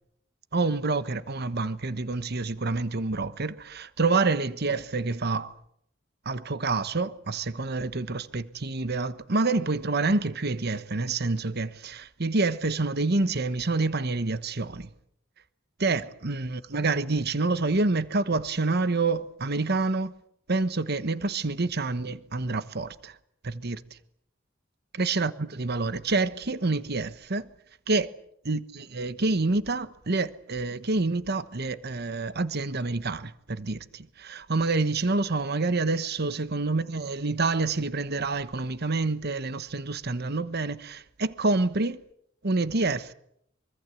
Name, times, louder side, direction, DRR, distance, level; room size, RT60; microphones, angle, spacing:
voice 1, 0.5-5.5 6.2-14.9 15.8-20.1 20.5-23.2 23.4-23.8 24.9-27.5 27.9-28.1 28.4-42.0 42.4-43.1, right 3 dB, 55° right, 1.2 m, -27 dB
25.0 x 24.5 x 8.3 m
head